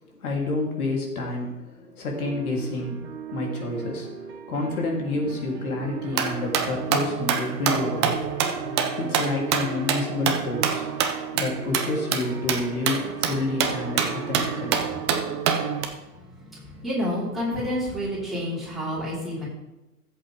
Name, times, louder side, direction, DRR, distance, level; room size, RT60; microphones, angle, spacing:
voice 1, 0.1-4.1 4.5-8.2 9.0-10.9 11.3-14.8, left 2 dB, 60° left, -1 dB, 3.4 m, -29 dB
sound 1, 2.1-15.4, right 7 dB, 40° right, 2.5 m, -37 dB
sound 2, 6.1-15.9, right 7 dB, 20° right, 0.5 m, -27 dB
voice 2, 14.5-19.4, equal, ahead, -9 dB, 4.6 m, -31 dB
15.0 x 7.8 x 3.6 m, 1.0 s
figure-of-eight pair, 115°, 50 cm